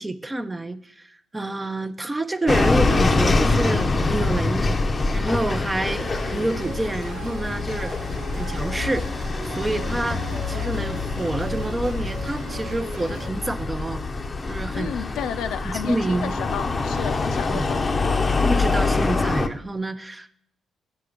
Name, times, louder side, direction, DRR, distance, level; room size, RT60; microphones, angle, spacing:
voice 1, 0.0-4.8 5.1-7.9 8.4-9.1 9.4-14.0 14.5-15.0 15.6-16.3 17.5-17.7 18.4-20.3, right 2 dB, 15° right, 12 dB, 0.5 m, -28 dB
sound 1, 2.5-19.5, left 3 dB, 30° left, 0.6 m, -25 dB
sound 2, 5.9-13.3, right 4 dB, 85° right, 0.9 m, -38 dB
voice 2, 14.7-18.3, left 8 dB, 80° left, 9 dB, 0.5 m, -32 dB
8.2 x 5.7 x 5.1 m, 0.68 s
cardioid pair, 90°, 0 cm